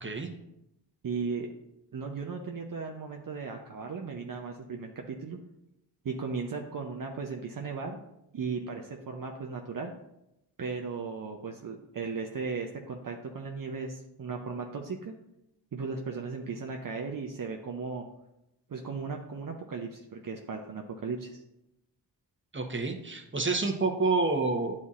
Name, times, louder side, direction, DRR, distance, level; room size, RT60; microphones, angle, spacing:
voice 1, 0.0-0.3 22.5-24.7, right 3 dB, 25° right, 3 dB, 1.1 m, -28 dB
voice 2, 1.0-1.5 1.9-5.4 6.0-8.0 8.3-9.9 10.6-15.1 15.7-18.0 18.7-21.4, right 5 dB, 50° right, 2 dB, 0.8 m, -36 dB
9.2 x 4.2 x 2.5 m, 0.85 s
supercardioid pair, 45°, 44 cm